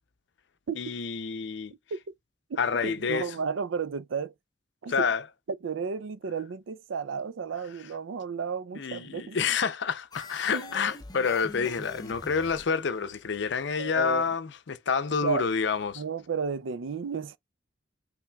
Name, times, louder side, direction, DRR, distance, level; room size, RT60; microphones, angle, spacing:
voice 1, 0.8-1.7 2.6-3.3 4.9-5.2 8.7-16.0, left 6 dB, 65° left, 0.6 m, -28 dB
voice 2, 2.5-4.3 4.8-5.1 5.5-9.5 10.5-10.8 13.8-14.3 15.2-15.5 16.0-17.4, right 5 dB, 85° right, 0.5 m, -33 dB
sound 1, 10.1-13.7, left 2 dB, 20° left, 0.6 m, -45 dB
5.8 x 3.4 x 2.3 m
head